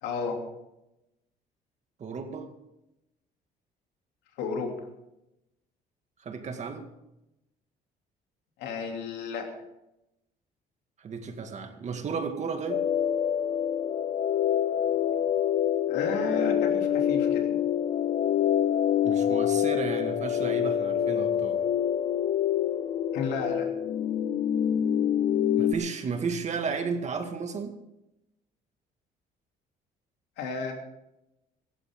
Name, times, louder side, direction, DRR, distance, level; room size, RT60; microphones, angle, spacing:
voice 1, 0.0-0.4 4.4-4.7 8.6-9.5 15.9-17.5 23.1-23.7 30.4-30.7, left 5 dB, 90° left, 2 dB, 3.0 m, -32 dB
voice 2, 2.0-2.5 6.2-6.8 11.0-12.8 19.0-21.6 25.6-27.7, right 5 dB, 45° right, 6 dB, 2.0 m, -33 dB
sound 1, 12.7-25.7, left 9 dB, 50° left, 1.0 m, -26 dB
17.0 x 14.5 x 3.8 m, 0.90 s
cardioid pair, 110°, 17 cm